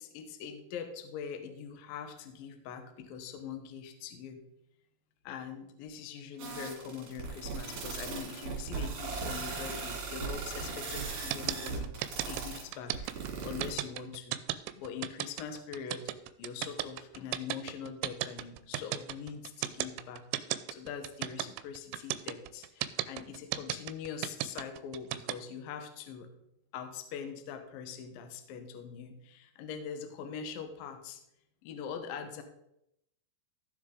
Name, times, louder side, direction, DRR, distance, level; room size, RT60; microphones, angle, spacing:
voice 1, 0.0-4.4 5.2-11.9 12.3-13.1 13.4-14.4 14.8-16.1 16.4-26.3 26.7-31.2 31.6-32.4, left 7 dB, 80° left, 6 dB, 2.1 m, -43 dB
sound 1, 6.4-13.7, right 4 dB, 50° right, 3.7 m, -38 dB
sound 2, 11.3-25.3, right 15 dB, 85° right, 3.1 m, -34 dB
15.0 x 6.6 x 3.9 m, 0.79 s
omnidirectional pair, 5.7 m